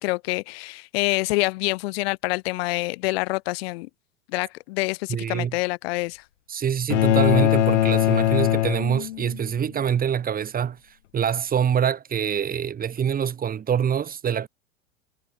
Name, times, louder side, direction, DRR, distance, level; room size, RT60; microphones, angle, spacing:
voice 1, 0.0-3.9 4.3-6.2, left 23 dB, 50° left, 3.1 m, -26 dB
voice 2, 5.1-5.5 6.5-10.8 11.1-14.5, right 8 dB, 20° right, 3.9 m, -25 dB
sound 1, 6.9-9.5, left 13 dB, 65° left, 0.7 m, -21 dB
figure-of-eight pair, 95°, 38 cm